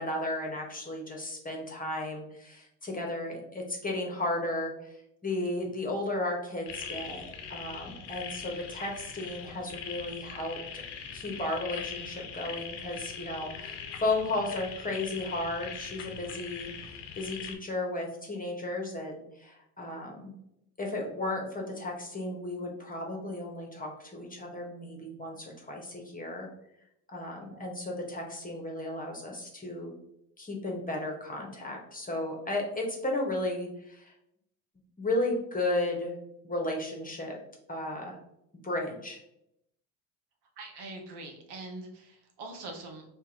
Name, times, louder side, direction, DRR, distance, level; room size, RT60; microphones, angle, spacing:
voice 1, 0.0-10.8 11.1-20.3 20.8-26.5 27.1-29.9 30.4-34.1 35.0-36.1 36.4-37.4 37.7-38.2 38.6-39.2, left 2 dB, 20° left, 0 dB, 1.4 m, -34 dB
sound 1, 6.7-17.5, left 7 dB, 60° left, 1.0 m, -41 dB
voice 2, 40.6-43.1, right 2 dB, 60° right, 1 dB, 1.3 m, -43 dB
4.6 x 3.4 x 3.0 m, 0.80 s
supercardioid pair, 70°, 45 cm